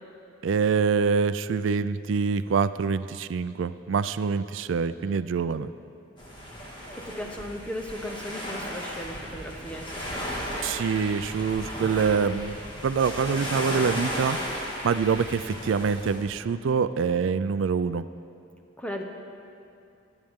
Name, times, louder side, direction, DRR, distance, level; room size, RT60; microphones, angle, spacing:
voice 1, 0.4-5.7 10.6-12.6 12.8-14.4 14.8-18.0, right 5 dB, 80° right, 13 dB, 0.4 m, -25 dB
sound 1, 6.2-16.2, equal, 25° left, 1.9 m, -35 dB
voice 2, 7.0-10.6 18.8-19.0, left 1 dB, 5° left, 2 dB, 0.9 m, -37 dB
22.5 x 9.0 x 3.7 m, 2.6 s
head